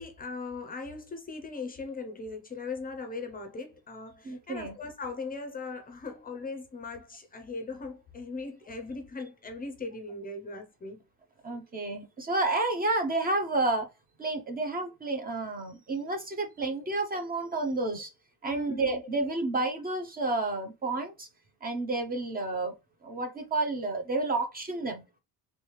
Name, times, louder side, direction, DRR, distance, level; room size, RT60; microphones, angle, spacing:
voice 1, 0.0-11.0 18.4-19.1, left 3 dB, 25° left, 0.5 m, -39 dB
voice 2, 4.2-4.7 11.4-13.9 14.2-18.1 18.4-21.3 21.6-22.7 23.0-25.0, right 2 dB, 25° right, 0.5 m, -30 dB
3.2 x 3.1 x 3.0 m
cardioid pair, 140°, 38 cm